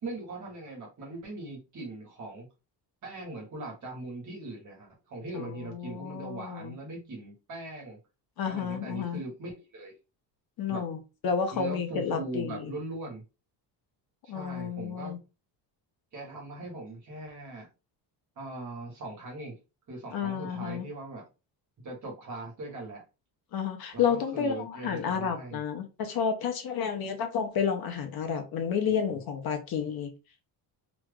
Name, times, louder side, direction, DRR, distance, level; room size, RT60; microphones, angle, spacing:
voice 1, 0.0-2.5 3.0-8.0 8.5-10.0 10.7-10.8 11.5-13.2 14.2-15.1 16.1-17.7 18.4-19.5 19.9-21.2 21.8-23.0 23.9-25.6 28.9-29.2, right 2 dB, 40° right, 1.5 m, -40 dB
voice 2, 5.3-6.7 8.4-9.2 10.6-12.7 14.3-15.2 20.1-20.9 23.5-30.1, left 7 dB, 55° left, 0.8 m, -31 dB
3.0 x 2.4 x 3.5 m
cardioid pair, 155°, 44 cm